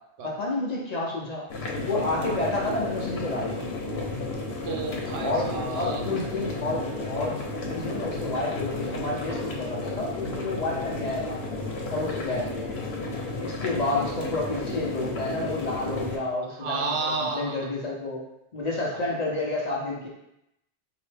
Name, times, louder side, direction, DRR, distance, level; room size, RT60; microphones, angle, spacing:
voice 1, 0.2-1.5 1.8-3.6 5.2-11.4 11.9-12.8 13.4-18.2 18.5-20.1, left 2 dB, 45° left, -3 dB, 0.7 m, -30 dB
sound 1, 1.5-16.2, left 2 dB, 90° left, 0.9 m, -32 dB
voice 2, 4.7-6.0 16.6-17.6, right 4 dB, 75° right, 2 dB, 0.8 m, -31 dB
3.8 x 2.1 x 3.2 m, 0.82 s
omnidirectional pair, 1.0 m